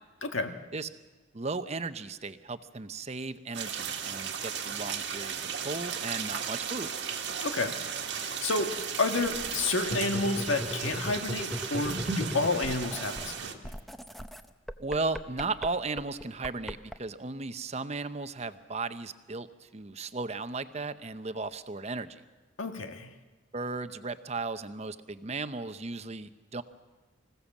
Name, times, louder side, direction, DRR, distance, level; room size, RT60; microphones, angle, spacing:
voice 1, 0.2-0.6 7.4-7.8 8.2-8.7 9.0-13.6 22.6-23.1, left 3 dB, 90° left, 5 dB, 1.6 m, -30 dB
voice 2, 1.3-6.9 14.8-22.2 23.5-26.6, right 3 dB, 35° right, 11 dB, 0.8 m, -36 dB
sound 1, 3.5-13.5, right 7 dB, 60° right, 1.6 m, -35 dB
sound 2, 9.2-13.4 13.6-16.9, equal, ahead, 0.6 m, -38 dB
25.5 x 16.0 x 7.3 m, 1.3 s
head